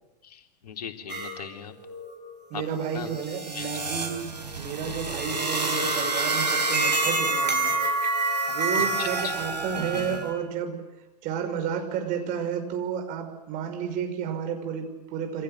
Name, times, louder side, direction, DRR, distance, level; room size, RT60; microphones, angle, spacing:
voice 1, 0.2-1.7 2.5-2.6 2.9-3.1 3.5-3.7 8.8-9.1, left 7 dB, 65° left, 4 dB, 3.6 m, -38 dB
sound 1, 1.1-1.3 1.8-10.3, right 3 dB, 85° right, 5.0 m, -28 dB
voice 2, 2.5-7.8 8.5-10.8 11.2-15.4, right 7 dB, 40° right, 6 dB, 5.7 m, -31 dB
28.0 x 26.0 x 8.1 m, 1.0 s
figure-of-eight pair, 95°, 21 cm